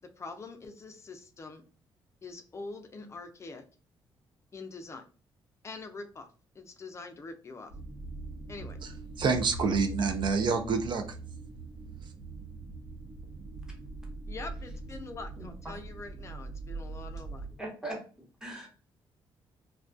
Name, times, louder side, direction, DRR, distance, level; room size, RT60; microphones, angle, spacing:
voice 1, 0.0-1.6 2.2-3.6 4.5-5.0 5.6-6.3 6.5-7.7 8.5-8.8 14.3-17.5, left 3 dB, 30° left, 0.4 m, -44 dB
sound 1, 7.7-17.6, right 3 dB, 70° right, 0.8 m, -42 dB
voice 2, 9.2-11.0 12.0-12.1, right 5 dB, 55° right, 0.4 m, -27 dB
voice 3, 15.4-15.7 17.6-18.0 18.4-18.7, right 1 dB, 5° right, 0.9 m, -39 dB
2.3 x 2.2 x 2.5 m
cardioid pair, 110°, 10 cm